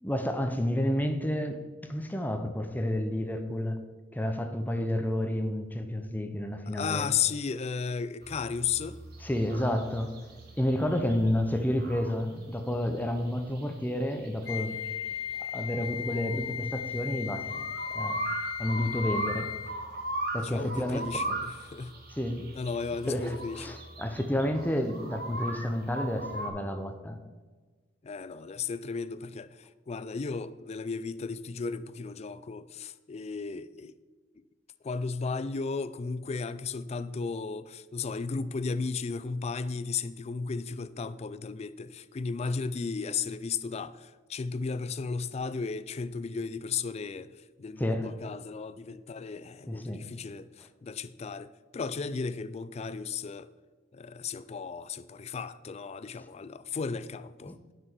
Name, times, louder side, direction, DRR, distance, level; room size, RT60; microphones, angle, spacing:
voice 1, 0.0-1.6 1.9-3.8 4.1-7.1 9.2-10.1 10.6-14.8 15.5-17.6 17.9-18.2 18.6-19.5 20.3-21.0 21.3-21.4 22.1-22.5 23.1-27.2 47.8-48.1 49.7-50.1 57.5-57.6, left 1 dB, 10° left, 0.7 m, -30 dB
voice 2, 6.7-9.0 20.4-21.9 22.5-23.8 28.0-34.0 34.8-53.5 53.9-57.6, left 5 dB, 35° left, 0.4 m, -35 dB
sound 1, 8.2-26.5, right 1 dB, 55° right, 1.5 m, -39 dB
Wind instrument woodwind instrument, 14.4-19.8, left 9 dB, 70° left, 0.8 m, -36 dB
10.5 x 6.1 x 4.6 m
head